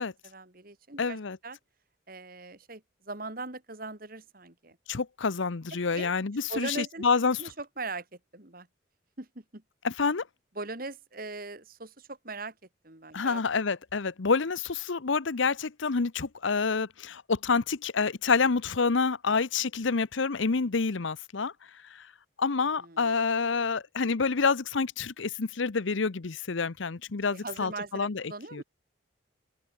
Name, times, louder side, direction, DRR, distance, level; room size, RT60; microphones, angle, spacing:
voice 1, 0.2-1.2 1.4-1.6 2.1-4.8 5.9-6.1 6.5-7.1 7.4-8.1 8.3-8.7 9.2-9.6 10.6-12.5 12.8-13.4 22.8-23.1 27.3-28.6, right 3 dB, 45° right, 2.5 m, -40 dB
voice 2, 1.0-1.4 4.9-7.4 9.8-10.2 13.1-21.5 21.9-22.1 22.4-28.2 28.5-28.6, left 4 dB, 75° left, 0.8 m, -28 dB
open air
head